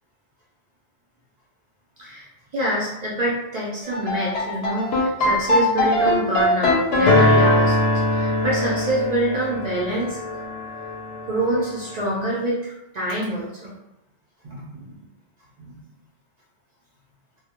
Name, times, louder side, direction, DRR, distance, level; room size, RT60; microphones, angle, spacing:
voice 1, 2.5-7.8 8.1-10.4 11.3-13.7 14.4-15.0 15.6-15.8, right 1 dB, 55° right, -5 dB, 0.5 m, -26 dB
sound 1, 3.8-12.1, left 1 dB, 65° left, 0.8 m, -21 dB
2.2 x 2.1 x 2.8 m, 0.88 s
omnidirectional pair, 1.2 m